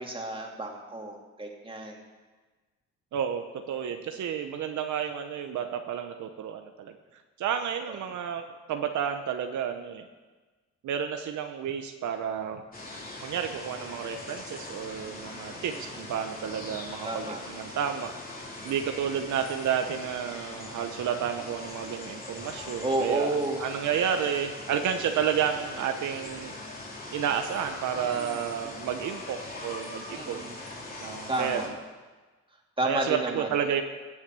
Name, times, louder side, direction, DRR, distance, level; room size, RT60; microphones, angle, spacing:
voice 1, 0.0-2.0 15.5-15.6 17.0-17.4 22.8-23.6 27.9-28.4 28.6-28.9 30.1-30.5 31.3-31.7 32.8-33.5, right 2 dB, 15° right, 0 dB, 2.7 m, -31 dB
voice 2, 3.1-6.9 7.4-10.0 10.8-12.6 13.2-18.1 18.6-26.5 27.1-30.6 31.0-31.6 32.8-33.8, right 8 dB, 75° right, 6 dB, 1.0 m, -31 dB
sound 1, 12.7-31.7, left 2 dB, 30° left, 3.3 m, -41 dB
17.5 x 7.4 x 6.2 m, 1.3 s
cardioid pair, 90°, 30 cm